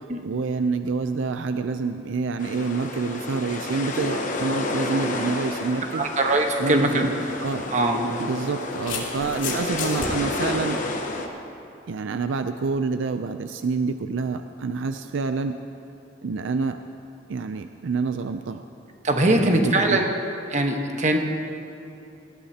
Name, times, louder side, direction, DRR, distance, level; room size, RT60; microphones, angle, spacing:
voice 1, 0.0-6.1 6.6-7.2 7.4-7.7 8.0-10.8 11.9-15.6 16.2-16.8 17.3-18.6 19.2-20.1, right 4 dB, 80° right, 8 dB, 0.4 m, -27 dB
sound 1, 2.4-11.3, left 2 dB, 40° left, 1.0 m, -30 dB
voice 2, 5.9-7.1 7.7-8.0 19.0-20.1 20.5-21.2, right 2 dB, 40° right, 3 dB, 1.2 m, -21 dB
sound 2, 7.0-7.1 8.2-10.1, left 5 dB, 80° left, 2.6 m, -32 dB
19.5 x 14.5 x 2.9 m, 2.8 s
head